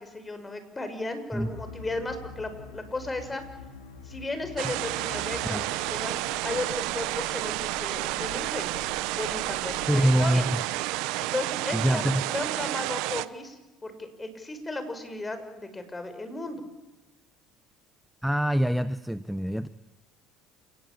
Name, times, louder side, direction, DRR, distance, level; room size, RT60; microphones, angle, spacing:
voice 1, 0.0-3.4 4.0-6.2 6.4-8.7 9.1-10.4 11.2-16.6, left 2 dB, 20° left, 9 dB, 5.8 m, -35 dB
sound 1, 1.3-10.3, left 5 dB, 85° left, 4.4 m, -46 dB
sound 2, 4.6-13.3, right 19 dB, 70° right, 0.9 m, -31 dB
voice 2, 9.9-10.6 11.7-12.2 18.2-19.7, right 1 dB, ahead, 14 dB, 0.9 m, -25 dB
28.5 x 18.5 x 8.8 m, 1.1 s
hypercardioid pair, 75°, 0 cm